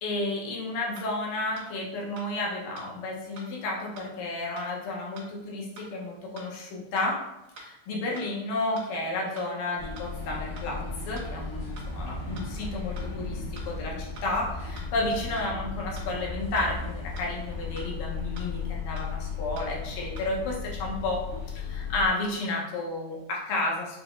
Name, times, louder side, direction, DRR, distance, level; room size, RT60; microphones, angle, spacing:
voice 1, 0.0-7.2 7.6-24.0, left 2 dB, 85° left, -2 dB, 2.6 m, -32 dB
sound 1, 1.0-1.1 1.6-1.7 2.2-2.3 2.8-2.9 3.4-3.5 4.0-4.1 4.6-4.7 5.2-5.3 5.8-5.9 6.4-6.5 7.0-7.1 7.6-7.7 8.2-8.3 8.8-8.9 9.4-9.5 10.0-10.1 10.6-10.7 11.2-11.3 11.8-11.9 12.4-12.5 13.0-13.1 13.6-13.7 14.2-14.3 14.8-14.9 15.4-15.5 16.0-16.1 16.6-16.7 17.2-17.3 17.8-17.9 18.4-18.5 19.0-19.1 19.6-19.7 20.2-20.3, right 2 dB, 85° right, 2.6 m, -45 dB
sound 2, 9.8-22.1, left 4 dB, 60° left, 2.2 m, -35 dB
6.9 x 2.9 x 2.5 m, 0.91 s
omnidirectional pair, 3.8 m